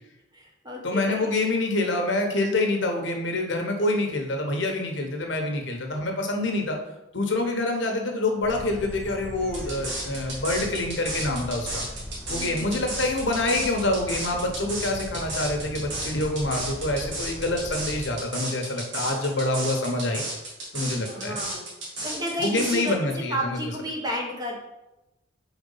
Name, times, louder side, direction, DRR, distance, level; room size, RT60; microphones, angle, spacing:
voice 1, 0.3-1.3 6.7-6.8 7.5-7.7 12.3-13.0 20.9-21.7 22.0-24.6, equal, 20° right, 0 dB, 1.0 m, -32 dB
voice 2, 0.8-6.8 7.1-11.8 12.3-20.2 20.7-21.4 22.4-23.7, left 2 dB, 65° left, 2 dB, 1.0 m, -26 dB
sound 1, 8.4-18.0, equal, 5° left, 0.6 m, -39 dB
sound 2, 9.5-22.9, right 2 dB, 65° right, 1.8 m, -33 dB
4.4 x 4.1 x 5.5 m, 0.96 s
head